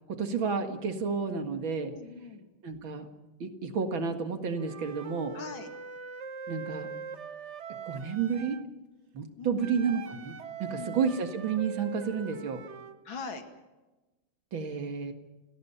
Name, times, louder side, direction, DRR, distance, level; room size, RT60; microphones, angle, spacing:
voice 1, 0.1-1.9 2.6-3.1 3.4-5.4 6.5-6.9 7.9-8.6 9.1-10.3 10.6-12.6 14.5-15.1, right 6 dB, 75° right, 7 dB, 2.7 m, -31 dB
voice 2, 1.8-2.5 5.3-5.7 9.4-9.8 10.7-11.0 13.0-13.4, left 4 dB, 75° left, 6 dB, 2.9 m, -42 dB
Wind instrument woodwind instrument, 4.6-8.6 9.6-13.0, right 6 dB, 45° right, 1.0 m, -42 dB
29.5 x 18.5 x 5.8 m, 1.1 s
omnidirectional pair, 2.2 m